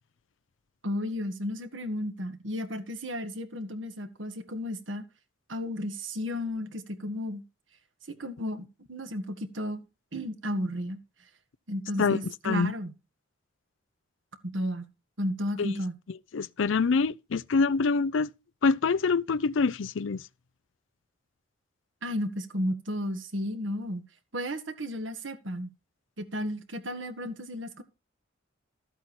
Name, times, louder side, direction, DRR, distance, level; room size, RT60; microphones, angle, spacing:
voice 1, 0.8-5.0 5.5-7.4 8.1-9.8 10.1-11.0 11.7-12.9 14.4-14.9 15.2-16.0 22.0-24.1 24.3-25.7 26.2-27.8, equal, 70° right, 1.8 m, -33 dB
voice 2, 16.3-18.3 18.6-20.2, left 4 dB, 75° left, 0.5 m, -25 dB
13.5 x 8.2 x 4.4 m
head